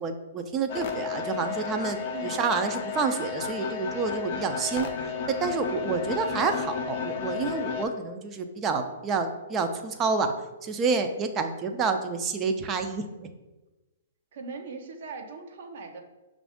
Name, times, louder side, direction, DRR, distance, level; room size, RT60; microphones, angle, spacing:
voice 1, 0.0-4.9 5.3-10.3 10.6-13.3, right 4 dB, 25° right, 7 dB, 0.5 m, -28 dB
sound 1, 0.7-7.9, left 6 dB, 50° left, 0.6 m, -33 dB
voice 2, 2.1-2.4 14.3-16.0, right 4 dB, 60° right, 4 dB, 0.7 m, -40 dB
6.0 x 2.5 x 3.5 m, 1.1 s
hypercardioid pair, 130°, 0 cm